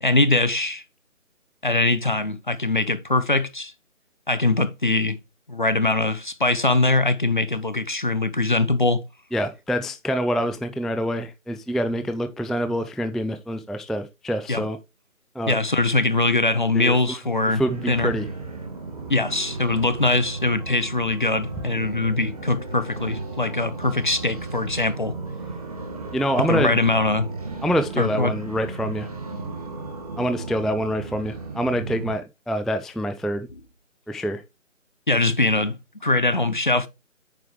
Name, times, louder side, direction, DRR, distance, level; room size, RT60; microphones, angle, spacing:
voice 1, 0.0-0.8 1.6-3.7 4.3-5.2 5.5-9.0 14.5-14.6 15.5-17.6 17.9-18.1 19.1-25.2 26.4-27.3 28.0-28.3 35.1-35.8 36.0-36.9, left 2 dB, 40° left, 0.6 m, -22 dB
voice 2, 9.3-14.8 15.4-15.6 16.7-17.2 17.6-18.3 26.1-26.8 27.6-29.1 30.2-33.5 34.1-34.4, equal, ahead, 0.3 m, -26 dB
sound 1, 17.6-32.1, right 3 dB, 30° right, 1.8 m, -34 dB
8.9 x 6.1 x 3.2 m
figure-of-eight pair, 170°, 40 cm